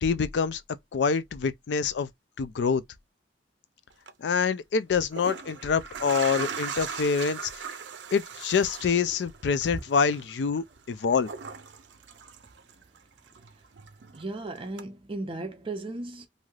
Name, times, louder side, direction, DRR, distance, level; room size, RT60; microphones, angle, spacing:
voice 1, 0.0-0.6 0.9-2.1 2.4-2.8 4.2-7.6 8.1-11.3, left 5 dB, 75° left, 0.4 m, -26 dB
sound 1, 3.9-4.1 4.9-13.0 13.3-14.3 14.8-14.9, right 6 dB, 90° right, 0.5 m, -39 dB
voice 2, 14.1-16.3, right 2 dB, 30° right, 0.6 m, -36 dB
3.2 x 2.7 x 2.4 m
head